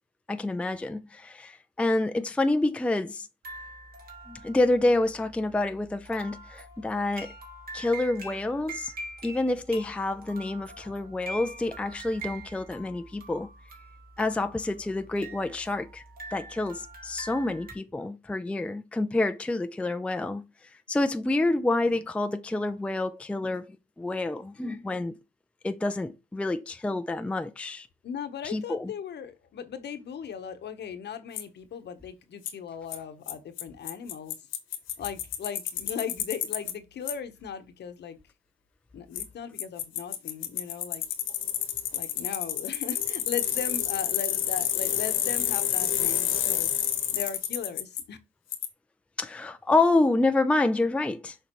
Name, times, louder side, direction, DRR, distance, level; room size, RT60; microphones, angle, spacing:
voice 1, 0.3-3.3 4.3-7.3 7.7-8.9 9.2-13.5 14.2-16.0 16.3-20.4 20.9-25.1 25.6-27.9 28.4-28.9 49.2-51.4, left 2 dB, 5° left, 0.4 m, -28 dB
sound 1, 3.4-17.7, right 2 dB, 50° right, 2.2 m, -44 dB
voice 2, 28.0-34.4 35.0-38.2 38.9-41.0 41.3-41.6 41.9-46.8 47.1-48.2, left 7 dB, 60° left, 1.0 m, -38 dB
Bicycle, 31.4-31.5 32.5-32.6 32.9-33.0 33.3-33.4 33.6-33.7 33.9-36.7 37.1-37.2 39.1-39.2 39.6-48.0 48.5-48.7, left 10 dB, 80° left, 1.3 m, -29 dB
6.7 x 5.1 x 3.0 m
cardioid pair, 90°, 20 cm